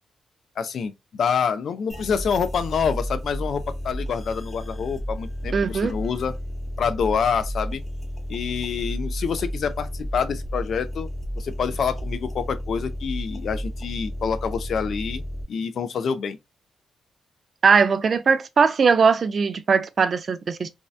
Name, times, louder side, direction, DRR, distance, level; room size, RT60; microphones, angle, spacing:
voice 1, 0.6-6.3 6.8-7.8 8.3-11.1 11.4-15.2 15.5-16.4, left 6 dB, 65° left, 0.4 m, -27 dB
sound 1, 1.9-15.4, equal, 25° left, 0.7 m, -32 dB
voice 2, 5.5-5.9 17.6-20.7, right 5 dB, 50° right, 0.3 m, -20 dB
2.7 x 2.1 x 2.3 m
cardioid pair, 95°, 0 cm